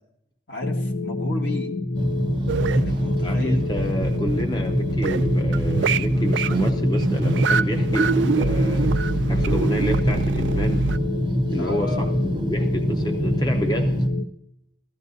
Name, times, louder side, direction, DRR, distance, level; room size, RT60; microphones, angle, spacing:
voice 1, 0.5-1.7 2.7-3.7 11.6-12.1, left 3 dB, 70° left, 1 dB, 1.6 m, -34 dB
sound 1, 0.6-14.2, left 2 dB, 90° left, 0.8 m, -26 dB
sound 2, 1.9-14.1, right 1 dB, 25° right, 0.6 m, -26 dB
sound 3, 2.5-11.0, right 5 dB, 70° right, 0.4 m, -26 dB
voice 2, 3.2-9.0 9.3-10.9 11.5-14.0, equal, 20° left, 6 dB, 0.5 m, -29 dB
16.5 x 13.0 x 2.7 m, 0.77 s
head